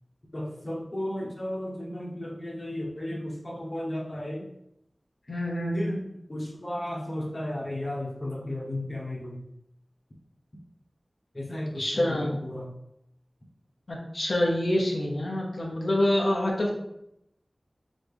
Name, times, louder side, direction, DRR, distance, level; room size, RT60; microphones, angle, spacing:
voice 1, 0.3-4.5 5.7-9.4 11.3-12.7, left 1 dB, 45° left, -1 dB, 1.1 m, -34 dB
voice 2, 5.3-6.0 11.8-12.4 13.9-16.7, left 1 dB, 70° left, -2 dB, 0.9 m, -26 dB
4.1 x 3.8 x 3.4 m, 0.79 s
wide cardioid pair, 45°, 0 cm